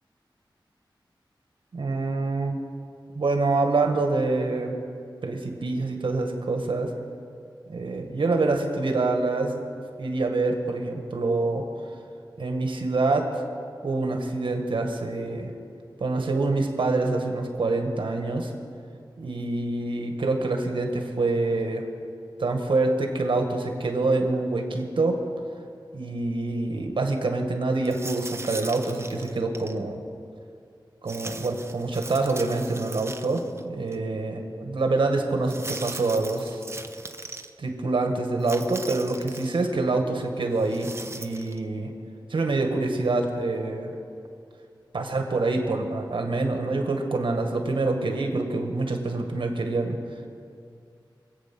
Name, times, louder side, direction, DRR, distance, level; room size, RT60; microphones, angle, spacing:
voice 1, 1.7-2.6 3.1-4.7 5.2-6.9 7.7-9.6 10.0-11.6 12.4-13.4 13.8-15.5 16.0-18.5 19.2-21.9 22.4-25.2 25.9-30.0 31.0-36.6 37.6-41.9 42.3-44.0 44.9-50.0, right 3 dB, 85° right, 4 dB, 1.7 m, -26 dB
sound 1, 27.8-29.8 31.1-33.6 33.9-34.0 35.4-37.5 38.4-39.6 40.6-41.6, right 2 dB, 30° right, 0.8 m, -39 dB
24.5 x 8.7 x 6.0 m, 2.4 s
wide cardioid pair, 95°, 8 cm